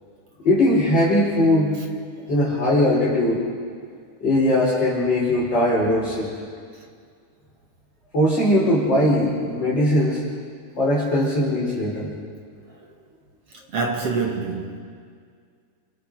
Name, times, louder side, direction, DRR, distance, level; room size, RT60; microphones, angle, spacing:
voice 1, 0.4-1.8 2.2-3.4 4.2-6.3 8.1-10.2 10.8-12.1, left 1 dB, 35° left, 5.2 m, -20 dB
voice 2, 13.5-14.8, right 4 dB, 50° right, 2.4 m, -27 dB
29.0 x 26.0 x 4.8 m
omnidirectional pair, 3.7 m